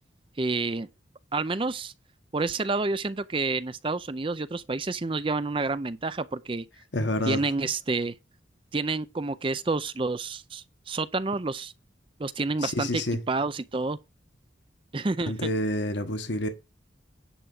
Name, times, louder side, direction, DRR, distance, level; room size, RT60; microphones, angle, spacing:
voice 1, 0.4-0.9 1.3-1.9 2.3-6.6 7.3-8.1 8.7-11.7 12.2-13.0 13.3-14.0 14.9-15.5, right 3 dB, 25° right, 0.5 m, -29 dB
voice 2, 6.9-7.4 12.6-13.2 15.3-16.5, left 1 dB, 70° left, 1.4 m, -28 dB
10.0 x 3.6 x 7.1 m
head